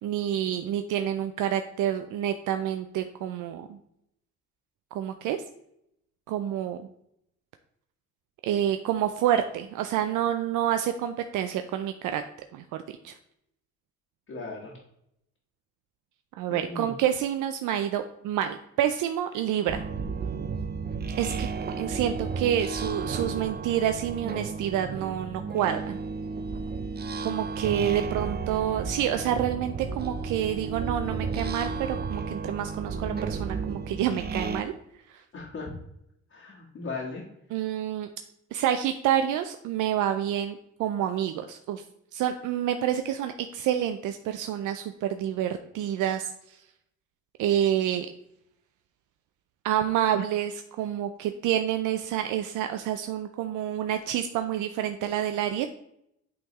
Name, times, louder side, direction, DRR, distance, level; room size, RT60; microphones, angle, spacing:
voice 1, 0.0-3.8 4.9-5.4 6.3-6.9 8.4-12.2 12.5-13.2 16.4-19.8 21.2-21.5 21.8-26.0 27.2-34.7 35.1-35.2 37.5-38.1 38.5-41.8 42.1-46.6 47.4-48.1 49.6-55.7, right 10 dB, 80° right, 8 dB, 0.5 m, -28 dB
voice 2, 14.3-14.8 16.5-16.9 35.3-35.7 36.3-37.2, left 3 dB, 50° left, -4 dB, 1.5 m, -37 dB
sound 1, 19.7-34.6, right 4 dB, 35° right, 0.6 m, -33 dB
8.6 x 3.6 x 3.0 m, 0.77 s
cardioid pair, 90°, 30 cm